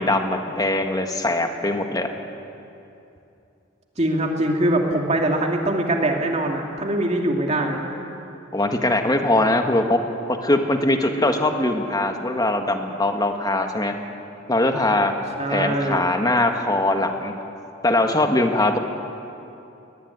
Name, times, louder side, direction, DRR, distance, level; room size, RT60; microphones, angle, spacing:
voice 1, 0.0-2.1 8.5-10.0 10.4-13.9 14.5-15.1 15.5-17.3 17.8-18.8, left 2 dB, 20° left, 5 dB, 1.7 m, -21 dB
voice 2, 4.0-7.8 15.4-16.0, right 1 dB, 35° right, 1 dB, 2.5 m, -22 dB
22.5 x 19.0 x 9.7 m, 2.7 s
head